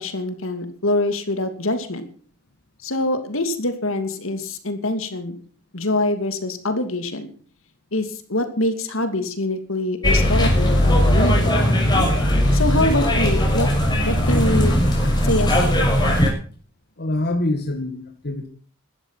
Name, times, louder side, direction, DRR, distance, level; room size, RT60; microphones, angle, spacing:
voice 1, 0.0-2.0 2.8-5.4 5.7-7.3 7.9-11.5 12.5-13.7 14.0-14.7 15.2-15.8, left 1 dB, 65° left, 9 dB, 2.8 m, -24 dB
sound 1, 10.0-16.3, equal, 20° left, 6.7 m, -18 dB
voice 2, 17.0-18.5, left 1 dB, 50° left, 5 dB, 2.2 m, -25 dB
16.0 x 13.0 x 5.9 m, 0.43 s
head